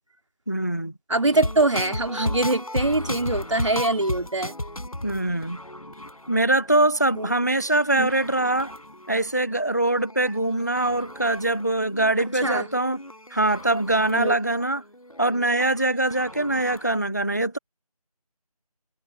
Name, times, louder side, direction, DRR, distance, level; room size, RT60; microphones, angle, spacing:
voice 1, 0.5-0.9 5.0-5.6 6.3-8.7 9.1-13.0 13.3-14.8 15.2-17.6, right 2 dB, 30° left, 0.5 m, -23 dB
voice 2, 1.1-4.5 7.1-7.3 7.9-8.1 12.4-12.7 14.1-14.3, right 2 dB, 50° right, 2.5 m, -23 dB
sound 1, 1.3-17.0, left 1 dB, 70° left, 3.6 m, -36 dB
figure-of-eight pair, 170°, 19 cm